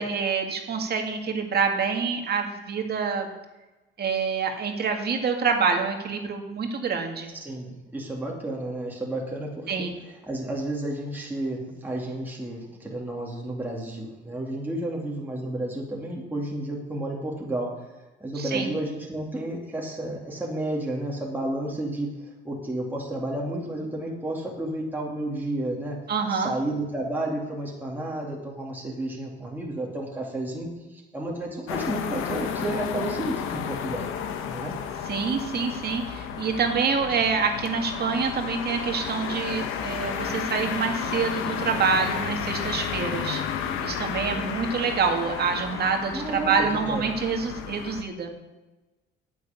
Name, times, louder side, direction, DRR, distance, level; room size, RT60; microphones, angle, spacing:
voice 1, 0.0-3.3 4.0-7.3 9.7-10.0 18.4-18.7 26.1-26.5 35.1-48.3, right 5 dB, 50° right, 4 dB, 2.1 m, -26 dB
voice 2, 7.3-9.9 10.3-17.9 18.2-22.1 22.4-26.0 26.3-34.1 34.5-34.7 46.1-47.0, right 1 dB, 10° right, -3 dB, 2.5 m, -31 dB
sound 1, 31.7-48.0, left 8 dB, 90° left, 1.2 m, -32 dB
9.6 x 8.1 x 8.5 m, 1.1 s
cardioid pair, 115°, 21 cm